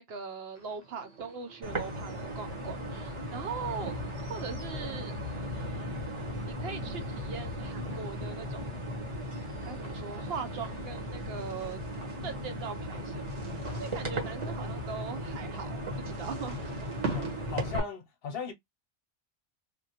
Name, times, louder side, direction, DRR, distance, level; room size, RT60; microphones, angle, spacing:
voice 1, 0.0-4.0 4.3-5.1 5.5-8.7 9.6-11.8 12.2-16.8, right 5 dB, 65° right, 0.8 m, -41 dB
sound 1, 0.5-17.7, right 4 dB, 85° right, 1.4 m, -46 dB
sound 2, 1.6-17.8, equal, 30° right, 0.8 m, -37 dB
voice 2, 17.1-18.5, left 6 dB, 60° left, 0.7 m, -38 dB
3.2 x 2.2 x 2.8 m
omnidirectional pair, 1.2 m